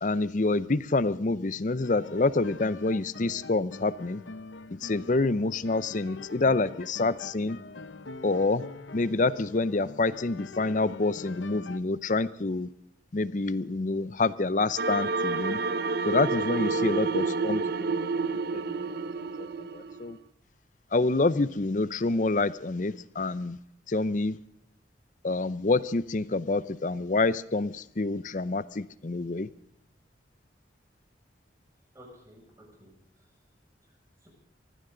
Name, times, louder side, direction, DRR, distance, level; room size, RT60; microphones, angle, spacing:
voice 1, 0.0-4.2 4.8-7.6 8.2-8.6 8.9-12.7 13.1-15.6 16.0-17.9 18.5-18.6 19.7-20.2 20.9-23.6 23.9-24.4 25.2-29.5, left 3 dB, 40° left, 17 dB, 0.6 m, -27 dB
sound 1, 1.8-11.8, left 3 dB, 80° left, 0.9 m, -44 dB
sound 2, 14.8-20.1, right 4 dB, 55° right, 0.7 m, -29 dB
voice 2, 31.9-33.4 33.8-34.3, equal, 15° right, 0 dB, 6.6 m, -55 dB
23.5 x 15.5 x 3.8 m, 0.71 s
head